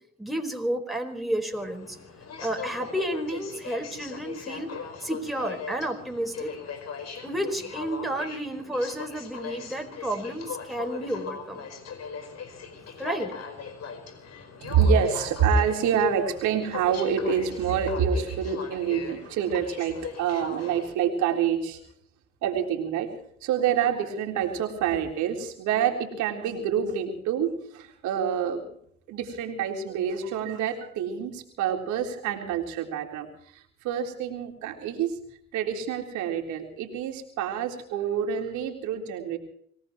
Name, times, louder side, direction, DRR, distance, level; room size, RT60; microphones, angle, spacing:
voice 1, 0.2-2.0 2.4-4.7 5.0-6.5 7.2-11.6 13.0-13.3, right 1 dB, ahead, 1 dB, 4.7 m, -31 dB
Aircraft, 1.5-20.9, left 6 dB, 60° left, 4.9 m, -39 dB
voice 2, 14.6-21.8 22.4-23.1 23.4-28.6 29.1-35.2 35.5-39.4, right 7 dB, 85° right, 3 dB, 3.8 m, -27 dB
26.0 x 18.0 x 3.1 m, 0.67 s
supercardioid pair, 65°, 29 cm